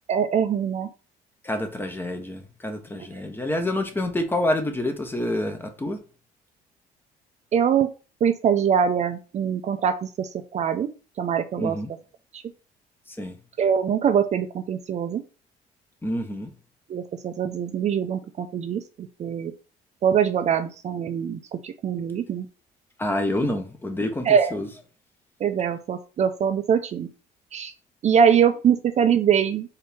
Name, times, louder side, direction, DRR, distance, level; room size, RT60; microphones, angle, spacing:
voice 1, 0.1-0.9 7.5-7.9 8.2-10.9 11.2-11.8 13.6-15.2 16.9-19.5 20.0-22.5 24.2-24.5 25.4-27.1 27.5-27.7 28.0-29.8, right 8 dB, 40° right, 0.4 m, -23 dB
voice 2, 1.4-6.0 11.6-11.9 13.1-13.4 16.0-16.5 23.0-24.7, left 1 dB, 10° left, 0.8 m, -28 dB
4.4 x 2.8 x 3.4 m
cardioid pair, 110°, 17 cm